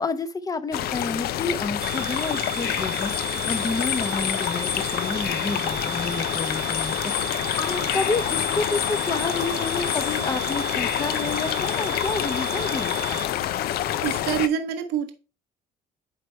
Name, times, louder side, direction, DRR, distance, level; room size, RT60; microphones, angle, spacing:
voice 1, 0.0-13.3, left 3 dB, 20° left, 12 dB, 0.7 m, -30 dB
sound 1, 0.7-14.5, left 12 dB, 65° left, 0.5 m, -27 dB
sound 2, 1.8-13.2, right 13 dB, 50° right, 0.6 m, -35 dB
voice 2, 14.0-15.1, right 9 dB, 80° right, 6 dB, 0.9 m, -26 dB
9.0 x 3.4 x 4.3 m, 0.34 s
cardioid pair, 110°, 17 cm